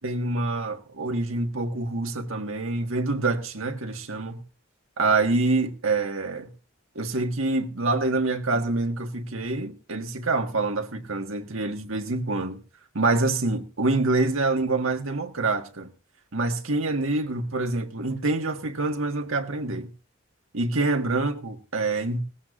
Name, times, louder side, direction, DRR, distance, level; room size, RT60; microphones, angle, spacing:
voice 1, 0.0-4.4 5.0-6.5 6.9-12.6 12.9-15.9 16.3-19.9 20.5-22.2, right 3 dB, 75° right, 1.6 m, -26 dB
18.0 x 14.5 x 2.5 m
head